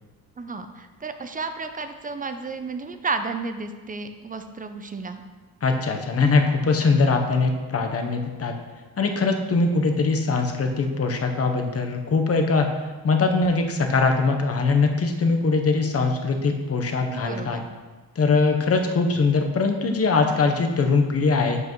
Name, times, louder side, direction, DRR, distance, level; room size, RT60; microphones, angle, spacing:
voice 1, 0.4-5.2 17.1-17.7, right 4 dB, 20° right, 8 dB, 0.5 m, -32 dB
voice 2, 5.6-8.5 9.0-12.7 13.0-17.6 18.2-21.6, left 4 dB, 35° left, 4 dB, 0.9 m, -22 dB
7.6 x 5.4 x 3.1 m, 1.3 s
cardioid pair, 85°, 40 cm